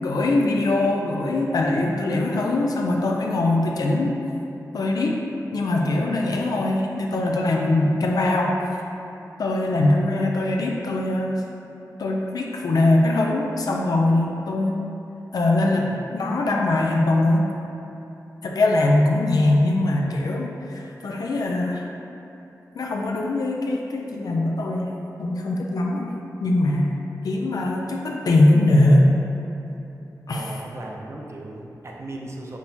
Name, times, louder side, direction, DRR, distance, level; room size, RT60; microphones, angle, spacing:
voice 1, 0.0-4.2 4.7-5.2 5.5-8.6 9.4-11.4 12.0-14.8 15.3-17.4 18.4-21.9 22.7-24.9 25.2-26.1 26.4-26.9 27.2-29.1 30.3-30.5, left 2 dB, 75° left, 0 dB, 0.4 m, -21 dB
voice 2, 30.3-32.6, right 1 dB, 45° right, -1 dB, 0.5 m, -37 dB
5.8 x 2.0 x 2.7 m, 2.9 s
cardioid pair, 65°, 7 cm